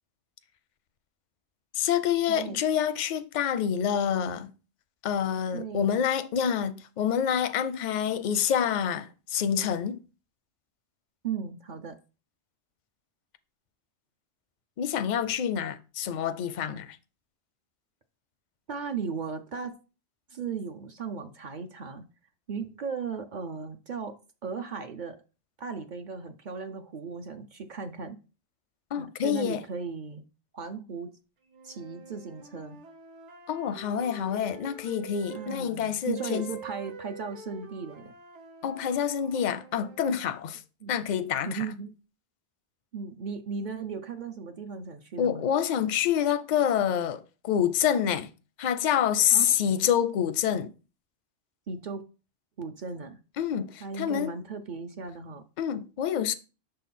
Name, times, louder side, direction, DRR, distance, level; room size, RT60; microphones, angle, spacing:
voice 1, 1.7-4.5 5.0-10.0 14.8-17.0 28.9-29.6 33.5-36.5 38.6-40.6 40.9-41.7 45.2-48.3 48.6-50.7 53.4-54.3 55.6-56.3, left 9 dB, 55° left, 0.5 m, -27 dB
voice 2, 2.3-2.6 5.5-5.9 11.2-12.0 18.7-19.8 20.3-22.1 22.5-24.1 24.4-25.2 25.6-28.2 29.0-30.2 30.5-31.2 31.6-32.8 35.3-38.1 40.8-41.0 41.5-41.9 42.9-45.5 49.3-49.8 51.7-52.0 52.6-53.2 53.8-55.4, right 5 dB, 50° right, 0.6 m, -36 dB
sound 1, 31.5-35.6 36.1-40.4, right 4 dB, 80° right, 1.2 m, -46 dB
6.5 x 3.8 x 4.1 m
omnidirectional pair, 1.2 m